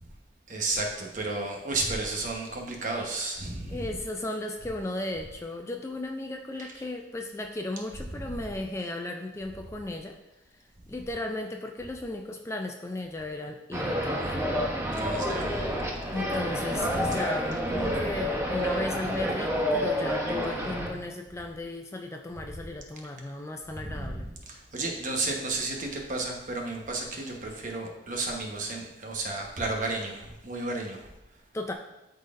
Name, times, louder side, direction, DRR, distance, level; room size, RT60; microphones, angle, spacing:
voice 1, 0.5-3.9 6.6-6.7 14.9-15.6 16.8-17.2 17.7-18.1 23.8-31.1, right 2 dB, 45° right, 0 dB, 1.1 m, -33 dB
voice 2, 3.7-10.2 10.9-14.4 16.1-24.3 31.5-31.7, left 2 dB, 15° left, 3 dB, 0.3 m, -35 dB
sound 1, 13.7-20.9, equal, 15° right, 0.9 m, -29 dB
12.0 x 4.0 x 2.5 m, 0.97 s
head